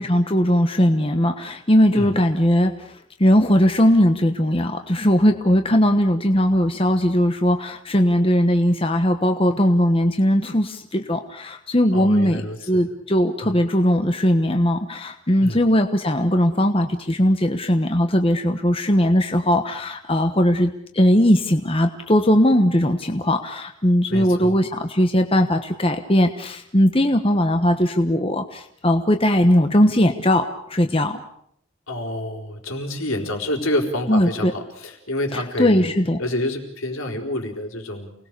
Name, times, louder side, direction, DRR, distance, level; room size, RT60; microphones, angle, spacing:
voice 1, 0.0-2.7 3.2-12.4 12.7-31.2 34.1-34.5 35.3-36.2, equal, 25° left, 6 dB, 1.2 m, -19 dB
voice 2, 11.9-12.9 13.4-13.5 15.4-15.6 24.1-24.6 31.9-35.9 36.2-38.1, left 1 dB, 75° left, 3 dB, 4.5 m, -28 dB
29.0 x 19.5 x 6.9 m, 0.70 s
head